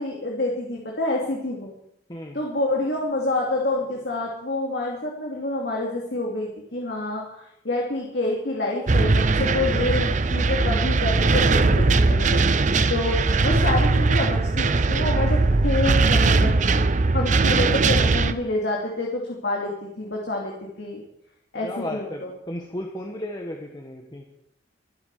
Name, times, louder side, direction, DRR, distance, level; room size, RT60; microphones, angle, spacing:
voice 1, 0.0-1.7 2.3-12.4 12.9-21.0 21.5-22.3, left 2 dB, 65° left, -2 dB, 2.7 m, -28 dB
voice 2, 2.1-2.4 21.6-24.2, left 1 dB, 25° left, 2 dB, 1.3 m, -34 dB
sound 1, 8.9-18.3, right 3 dB, 45° right, 0.7 m, -20 dB
25.5 x 8.4 x 4.9 m, 0.77 s
head